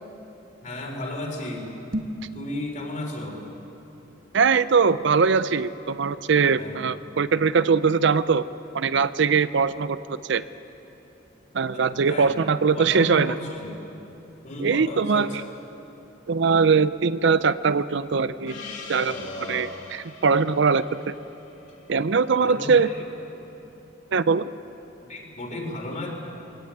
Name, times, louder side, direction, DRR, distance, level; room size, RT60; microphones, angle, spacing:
voice 1, 0.6-3.4 6.6-6.8 11.7-12.3 12.7-13.8 14.4-15.4 19.0-19.7 22.4-23.0 25.1-26.1, left 1 dB, 40° left, 1 dB, 3.9 m, -34 dB
sound 1, 1.8-2.3, equal, 50° right, 1.5 m, -31 dB
voice 2, 4.3-8.4 8.7-10.4 11.5-13.3 14.6-15.3 16.3-18.6 18.9-19.1 19.5-21.2 21.9-22.9 24.1-24.5, right 5 dB, 65° right, 15 dB, 0.5 m, -21 dB
Gong, 18.5-23.2, left 4 dB, 80° left, 2.7 m, -44 dB
21.0 x 17.5 x 9.2 m, 3.0 s
head